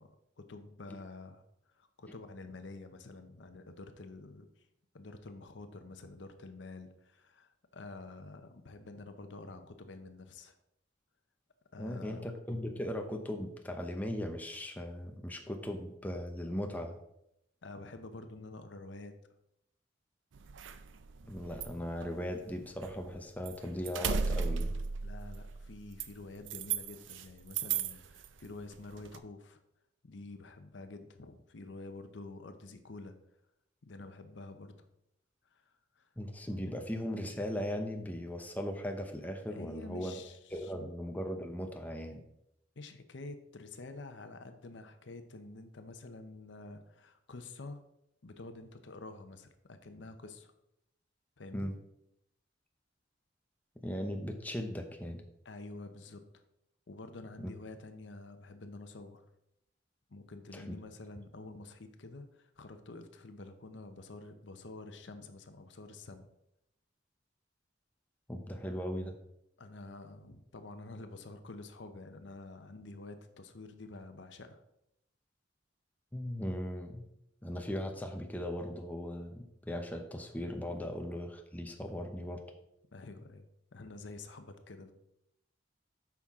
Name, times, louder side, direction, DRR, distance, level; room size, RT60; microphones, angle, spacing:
voice 1, 0.0-1.4 1.7-4.7 4.9-10.6 11.7-12.3 17.6-19.1 25.0-29.6 30.0-33.2 33.8-34.9 35.5-36.1 39.5-40.9 42.8-47.8 48.2-50.5 51.4-51.7 55.4-56.2 56.9-59.2 60.1-66.3 69.6-74.6 80.8-80.9 82.9-83.5 83.7-84.9, left 2 dB, 70° left, 8 dB, 0.7 m, -48 dB
voice 2, 11.8-17.0 21.2-24.7 36.2-40.1 40.5-42.2 51.5-51.7 53.8-55.2 57.4-57.5 60.5-60.7 68.3-69.2 76.1-77.0 77.4-82.4, equal, 10° left, 3 dB, 0.7 m, -38 dB
sound 1, 20.3-23.2 23.4-27.2 27.5-28.3 28.7-29.2, right 5 dB, 80° right, 0.5 m, -36 dB
8.6 x 5.9 x 3.6 m, 0.80 s
head